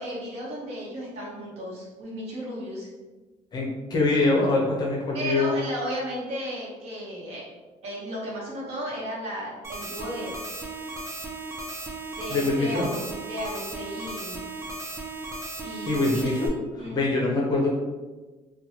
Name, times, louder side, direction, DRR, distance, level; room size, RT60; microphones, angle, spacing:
voice 1, 0.0-2.9 5.1-7.4 7.8-10.4 12.2-14.4 15.6-16.2 16.8-17.1, equal, 55° right, -5 dB, 1.0 m, -34 dB
voice 2, 3.5-5.5 12.3-12.9 15.9-16.5 16.8-17.8, left 2 dB, 30° left, -3 dB, 0.6 m, -24 dB
sound 1, 9.6-16.5, right 2 dB, 20° right, 0.4 m, -36 dB
2.9 x 2.2 x 2.8 m, 1.2 s
cardioid pair, 160°, 13 cm